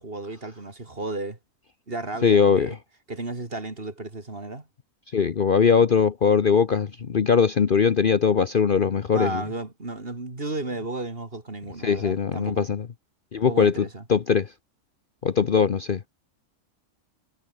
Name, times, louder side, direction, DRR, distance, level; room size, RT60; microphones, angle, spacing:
voice 1, 0.0-1.4 1.9-2.8 3.1-4.7 9.1-12.7 13.4-14.0, right 2 dB, 40° right, 3.4 m, -33 dB
voice 2, 2.2-2.7 5.1-9.4 11.8-12.9 13.3-14.5 15.2-16.0, left 6 dB, 45° left, 0.9 m, -21 dB
omnidirectional pair, 1.4 m